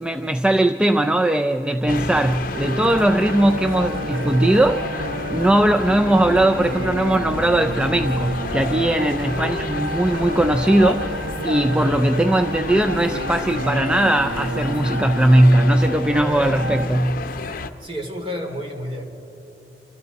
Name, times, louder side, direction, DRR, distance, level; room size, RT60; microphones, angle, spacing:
voice 1, 0.0-5.0 5.3-11.2 11.4-17.2, right 1 dB, 5° right, 6 dB, 0.4 m, -19 dB
sound 1, 1.9-17.7, left 3 dB, 50° left, 0.7 m, -31 dB
sound 2, 2.5-16.9, right 1 dB, 70° right, 0.8 m, -30 dB
voice 2, 9.0-9.3 17.5-19.1, equal, 30° right, 2 dB, 2.9 m, -31 dB
28.5 x 26.0 x 4.1 m, 3.0 s
head